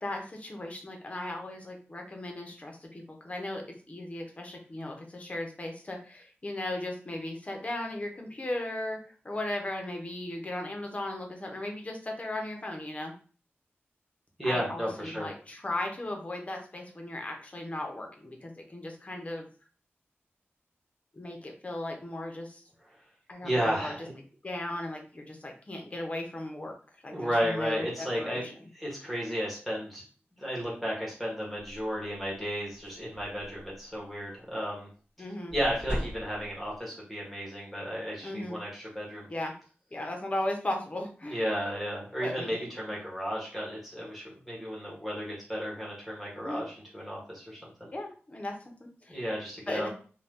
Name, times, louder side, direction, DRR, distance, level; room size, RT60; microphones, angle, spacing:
voice 1, 0.0-13.1 14.4-19.5 21.1-22.6 23.3-23.9 24.4-26.7 27.0-28.5 35.2-35.6 38.2-38.6 39.3-39.5 39.9-41.5 42.2-42.5 46.4-46.6 47.9-49.2 49.7-49.9, left 1 dB, 30° left, 2 dB, 0.7 m, -37 dB
voice 2, 14.4-15.3 23.4-24.1 27.1-28.4 28.7-30.0 30.4-34.9 35.5-39.3 41.3-47.9 49.1-49.9, equal, ahead, -5 dB, 1.0 m, -33 dB
sound 1, 32.3-32.4 32.7-33.8 35.5-36.7, equal, 20° right, 1.3 m, -38 dB
2.7 x 2.2 x 3.4 m, 0.40 s
wide cardioid pair, 110°, 4 cm